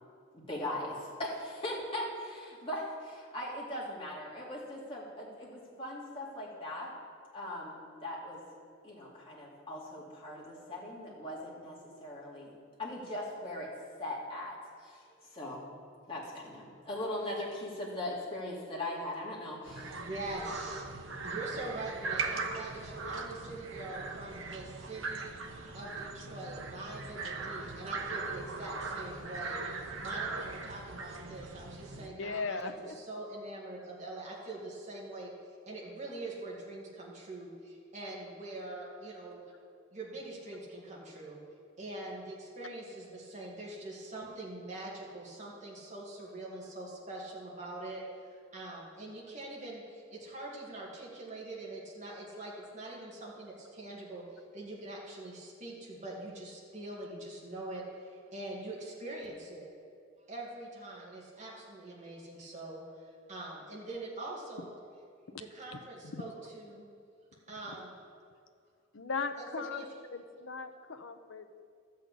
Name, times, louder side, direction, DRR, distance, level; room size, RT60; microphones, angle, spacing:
voice 1, 0.3-6.9 7.3-8.4 8.8-13.7 14.0-15.0 15.3-15.7 16.1-20.0, left 1 dB, 25° left, -6 dB, 2.6 m, -40 dB
voice 2, 19.7-20.9 21.2-25.3 25.7-35.3 35.7-39.4 39.9-41.4 41.8-59.7 60.3-62.8 63.3-64.7 65.3-66.8 67.5-67.9 69.4-69.8, right 2 dB, 35° right, -5 dB, 2.2 m, -43 dB
sound 1, 19.7-32.1, right 4 dB, 75° right, 1.0 m, -39 dB
voice 3, 31.9-33.0 66.0-66.2 68.9-69.8 70.1-71.5, left 4 dB, 75° left, 8 dB, 0.8 m, -38 dB
12.5 x 5.7 x 8.5 m, 2.3 s
head